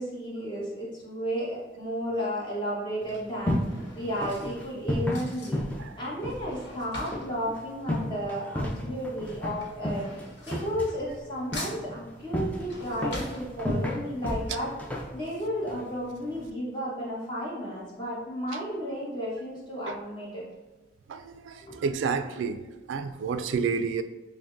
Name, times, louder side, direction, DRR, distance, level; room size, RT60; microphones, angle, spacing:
voice 1, 0.0-5.7 6.0-10.1 10.5-14.7 15.1-20.4 21.6-21.8, equal, 25° left, -6 dB, 1.1 m, -33 dB
Drawer open or close / Cutlery silverware, 1.5-1.9 2.7-8.6 8.9-11.3 11.5-14.1 14.5-14.6 14.8-14.9, left 1 dB, 70° left, 1.1 m, -44 dB
sound 1, 3.0-16.5, left 1 dB, 10° left, 0.4 m, -34 dB
voice 2, 21.1-22.6 22.9-24.0, right 5 dB, 85° right, 11 dB, 0.3 m, -30 dB
5.7 x 2.1 x 2.5 m, 1.2 s
head